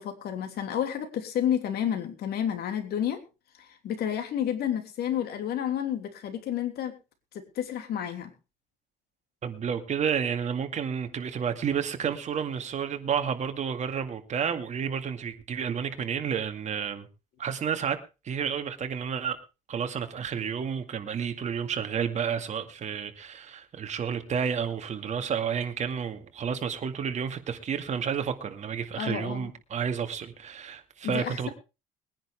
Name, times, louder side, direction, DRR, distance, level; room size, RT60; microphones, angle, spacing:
voice 1, 0.0-3.2 3.8-7.0 7.3-8.3 28.9-29.5 31.0-31.5, left 9 dB, 70° left, 3.1 m, -30 dB
voice 2, 9.4-17.1 17.4-18.0 18.2-19.4 19.7-31.5, right 7 dB, 45° right, 2.1 m, -31 dB
21.5 x 10.0 x 3.5 m
cardioid pair, 110°, 17 cm